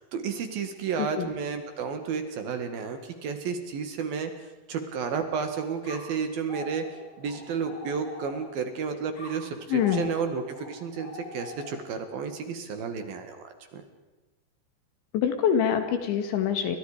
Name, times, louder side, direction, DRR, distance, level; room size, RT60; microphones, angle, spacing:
voice 1, 0.0-4.3 4.7-6.8 7.2-13.8, right 6 dB, 60° right, 7 dB, 3.2 m, -32 dB
sound 1, 5.8-8.7 9.1-12.0, left 2 dB, 50° left, 7.6 m, -43 dB
voice 2, 9.7-10.1 15.1-16.8, left 8 dB, 75° left, 7 dB, 4.5 m, -25 dB
29.5 x 25.0 x 5.1 m, 1.1 s
omnidirectional pair, 5.4 m